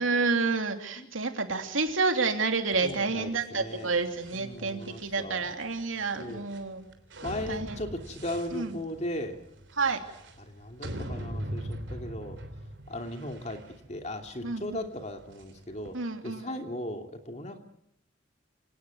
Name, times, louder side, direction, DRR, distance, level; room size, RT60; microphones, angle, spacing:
voice 1, 0.0-6.9 7.5-7.8 8.5-8.8 9.7-10.0 14.4-14.8 15.9-16.5, right 4 dB, 90° right, 5 dB, 3.0 m, -29 dB
sound 1, 2.7-15.9, right 1 dB, 70° right, 3.3 m, -42 dB
voice 2, 2.8-3.9 4.4-5.5 6.2-6.5 7.2-9.4 10.4-12.4 12.9-13.6 13.9-16.0 16.2-17.6, left 1 dB, 35° left, 5 dB, 2.8 m, -37 dB
26.5 x 18.5 x 9.7 m, 0.78 s
head